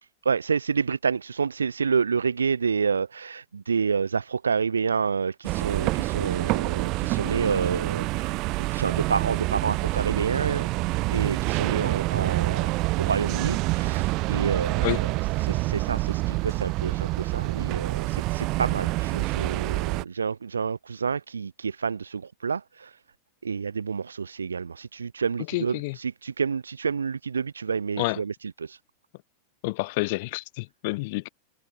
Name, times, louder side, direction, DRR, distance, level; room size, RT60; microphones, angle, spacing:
voice 1, 0.2-8.4 8.7-10.7 11.1-15.1 15.4-23.0 23.4-28.8, right 5 dB, 75° right, 3.6 m, -29 dB
sound 1, 5.4-20.0, right 22 dB, 40° right, 3.1 m, -27 dB
voice 2, 25.5-26.0 28.0-28.2 29.6-31.3, left 24 dB, 50° left, 2.2 m, -29 dB
figure-of-eight pair, 90°, 0 cm